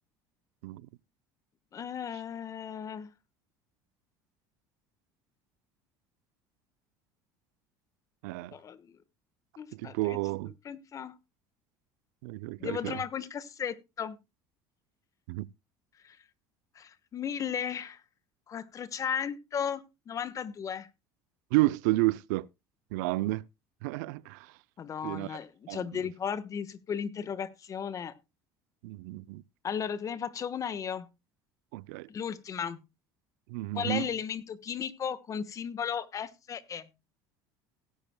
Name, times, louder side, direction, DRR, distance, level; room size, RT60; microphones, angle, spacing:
voice 1, 1.7-3.1 8.5-9.0 9.6-10.2 10.6-11.1 12.6-14.2 16.0-16.2 16.7-18.0 18.5-20.9 24.8-28.1 29.6-31.1 32.1-32.8 33.7-36.9, left 7 dB, 40° left, 1.2 m, -35 dB
voice 2, 8.2-8.5 9.7-10.5 12.2-13.0 15.3-15.5 21.5-22.5 22.9-23.4 23.8-24.5 25.0-25.4 25.7-25.9 28.8-29.4 31.7-32.1 33.5-34.1, right 20 dB, 85° right, 0.5 m, -31 dB
17.5 x 10.0 x 2.2 m
supercardioid pair, 95°, 9 cm